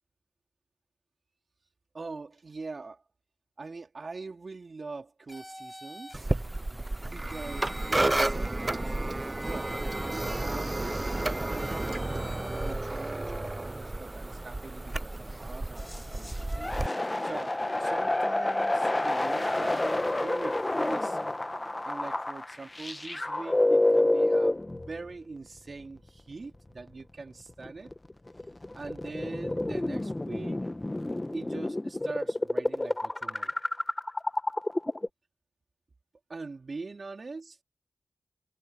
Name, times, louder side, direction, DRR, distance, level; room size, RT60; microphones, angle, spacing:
voice 1, 1.9-3.0 3.6-6.3 7.0-16.7 17.2-17.5 17.8-21.3 21.8-27.9 28.7-30.7 31.3-33.6 36.3-37.6, right 3 dB, 55° right, 2.8 m, -43 dB
sound 1, 5.3-6.2 7.3-8.3 9.4-10.3 11.6-12.7, equal, 5° left, 4.0 m, -47 dB
sound 2, 6.1-16.9, right 2 dB, 25° right, 0.6 m, -31 dB
sound 3, 15.8-25.1 25.8-25.9 27.5-35.1, left 1 dB, 25° left, 1.3 m, -29 dB
cardioid pair, 45°, 0 cm